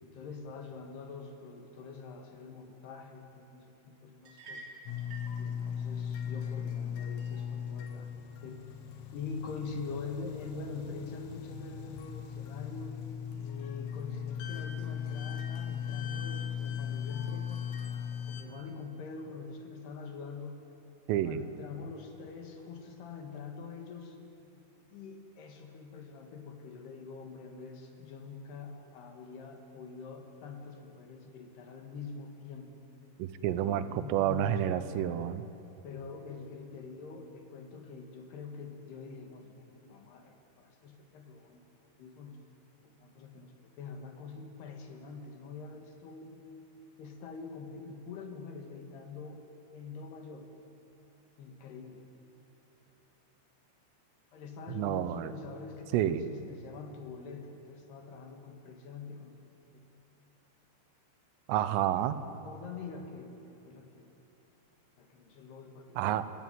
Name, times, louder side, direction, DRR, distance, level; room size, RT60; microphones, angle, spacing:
voice 1, 0.0-4.7 5.4-8.6 9.1-13.0 13.4-17.7 18.2-20.6 21.2-24.2 24.9-32.9 33.5-34.8 35.8-42.4 42.8-46.5 47.0-49.4 49.7-50.5 51.4-52.0 54.3-59.4 59.7-59.8 62.4-64.1 65.0-66.3, left 4 dB, 60° left, 4 dB, 3.5 m, -45 dB
sound 1, 4.2-5.4, right 3 dB, 35° right, 4.0 m, -47 dB
sound 2, 4.9-18.4, left 8 dB, 85° left, 4.2 m, -38 dB
voice 2, 21.1-21.4 33.2-35.5 54.7-55.3 55.9-56.3 61.5-62.2 66.0-66.3, right 11 dB, 85° right, 12 dB, 3.5 m, -29 dB
30.0 x 17.0 x 9.4 m, 2.9 s
omnidirectional pair, 5.7 m